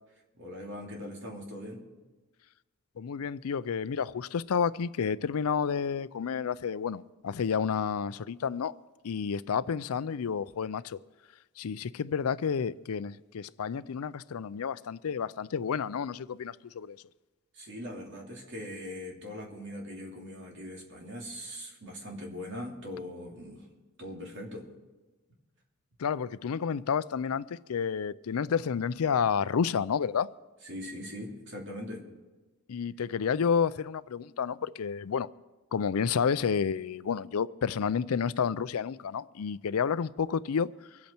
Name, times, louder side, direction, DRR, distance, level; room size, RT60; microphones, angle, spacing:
voice 1, 0.3-1.8 17.5-23.7 24.0-24.7 30.6-32.0, left 1 dB, 55° right, 2.8 m, -41 dB
voice 2, 3.0-8.7 9.0-11.0 11.6-17.0 26.0-30.3 32.7-35.3 35.7-40.7, left 6 dB, 80° left, 0.4 m, -30 dB
24.5 x 8.5 x 4.4 m
head